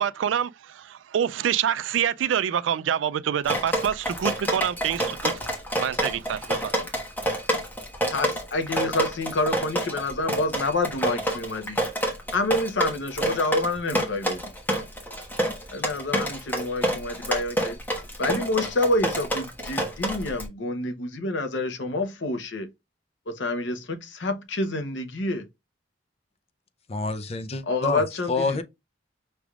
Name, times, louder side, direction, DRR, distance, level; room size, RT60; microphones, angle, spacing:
voice 1, 0.0-6.9, right 9 dB, 85° right, 0.3 m, -27 dB
Drip, 3.4-20.5, right 1 dB, 10° left, 1.2 m, -28 dB
voice 2, 8.1-11.9 12.3-14.4 15.7-17.8 18.2-22.7 23.3-25.5 27.7-28.6, left 2 dB, 75° left, 0.8 m, -28 dB
voice 3, 26.9-28.0 28.3-28.6, left 3 dB, 35° left, 0.5 m, -27 dB
6.0 x 3.4 x 2.4 m
head